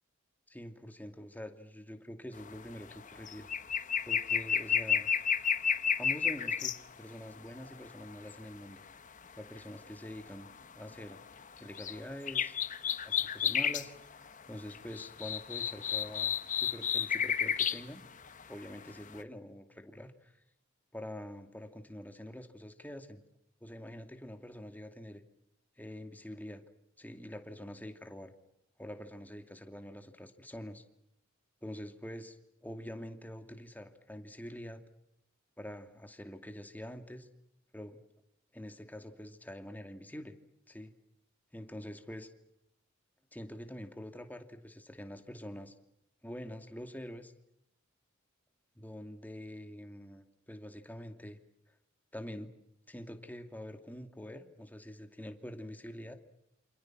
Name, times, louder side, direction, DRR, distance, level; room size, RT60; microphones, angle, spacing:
voice 1, 0.5-3.5 4.0-5.1 5.9-8.8 9.4-10.5 10.8-11.2 11.6-12.6 13.0-14.0 14.2-18.0 18.5-20.3 20.9-23.2 23.6-25.2 25.8-26.6 27.0-28.3 28.8-30.8 31.6-32.4 32.6-34.8 35.6-37.3 37.7-38.0 38.5-40.3 40.7-40.9 41.5-42.3 43.3-45.7 46.2-47.3 48.8-51.4 52.1-52.5 52.9-56.1, equal, 10° left, 7 dB, 2.5 m, -45 dB
sound 1, 2.4-2.6 2.9-6.8 7.6-8.3 10.3-10.5 10.9-12.0 12.3-13.9 14.3-14.4 14.6-17.8 18.3-18.9 19.2-19.3, left 7 dB, 40° left, 1.1 m, -31 dB
28.5 x 27.5 x 6.2 m, 0.81 s
head